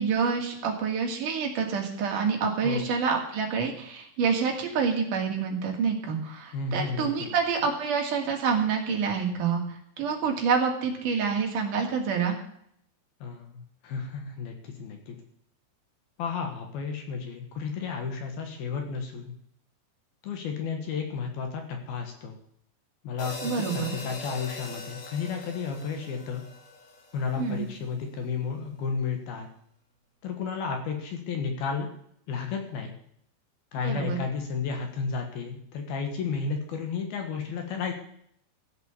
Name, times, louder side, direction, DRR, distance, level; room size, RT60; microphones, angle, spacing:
voice 1, 0.0-12.4 23.4-24.0 27.4-27.7 33.8-34.2, right 6 dB, 50° right, 1 dB, 3.4 m, -27 dB
voice 2, 6.5-7.3 13.2-15.2 16.2-19.3 20.2-22.4 23.0-26.4 27.1-29.5 30.2-31.9 32.3-32.9 33.7-37.9, left 5 dB, 65° left, 4 dB, 3.0 m, -32 dB
sound 1, 23.2-27.6, left 2 dB, 50° left, 4.2 m, -41 dB
15.5 x 8.0 x 7.1 m, 0.69 s
omnidirectional pair, 5.3 m